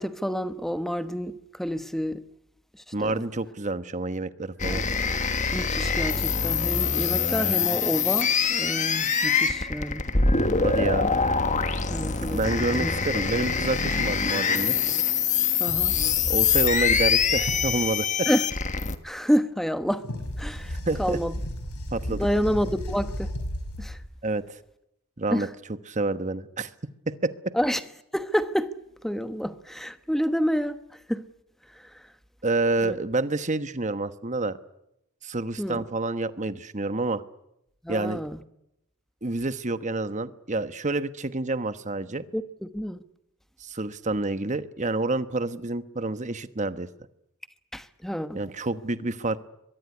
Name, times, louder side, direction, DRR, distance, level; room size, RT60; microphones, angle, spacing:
voice 1, 0.0-2.2 3.0-3.1 4.7-4.8 5.5-10.0 11.9-12.9 15.6-16.0 18.3-18.5 19.0-20.1 20.4-21.3 22.1-23.3 23.8-24.0 25.3-25.5 27.5-27.8 28.1-28.7 29.0-30.8 31.1-31.3 31.9-32.0 32.8-33.0 35.6-35.9 37.8-38.4 42.3-43.0 47.7-48.4, equal, ahead, 1.1 m, -28 dB
voice 2, 2.9-4.8 10.6-11.1 12.3-14.8 16.2-18.3 20.9-21.2 21.9-22.3 24.2-24.4 25.2-25.5 25.9-26.7 27.1-27.3 32.4-34.6 35.2-37.2 37.9-38.2 39.2-42.2 43.6-46.9 48.3-49.4, right 2 dB, 35° right, 1.2 m, -28 dB
sound 1, 4.6-19.0, left 6 dB, 35° left, 1.5 m, -24 dB
sound 2, 15.7-17.9 20.0-24.2, equal, 90° left, 6.5 m, -34 dB
23.0 x 22.0 x 9.6 m
head